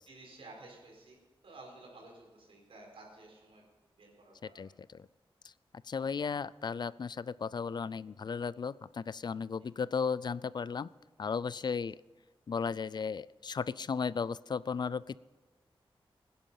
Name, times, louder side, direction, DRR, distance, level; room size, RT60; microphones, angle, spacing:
voice 1, 0.1-1.2 1.4-3.7 4.0-4.7 9.6-9.7 11.6-11.7, right 2 dB, 85° right, -1 dB, 4.3 m, -53 dB
voice 2, 4.6-5.1 5.8-10.9 11.2-12.0 12.5-15.2, left 5 dB, 50° left, 20 dB, 0.3 m, -35 dB
19.0 x 10.5 x 5.6 m, 1.2 s
wide cardioid pair, 85°, 9 cm